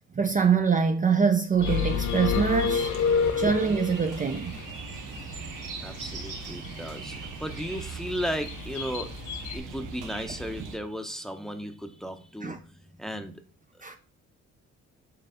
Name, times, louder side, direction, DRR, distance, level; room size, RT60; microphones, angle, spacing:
voice 1, 0.1-2.9 3.4-4.6 5.3-5.4 12.4-12.6 13.8-14.0, right 6 dB, 25° right, 0.6 m, -24 dB
Bird, 1.6-9.6, left 8 dB, 75° left, 1.3 m, -44 dB
sound 1, 1.6-4.0, left 6 dB, 50° left, 0.4 m, -26 dB
sound 2, 1.6-10.8, right 4 dB, 90° right, 1.2 m, -39 dB
voice 2, 3.2-3.5 5.8-9.1 9.5-13.4 13.7-14.0, equal, ahead, 0.8 m, -35 dB
6.8 x 3.2 x 5.1 m
cardioid pair, 90°, 30 cm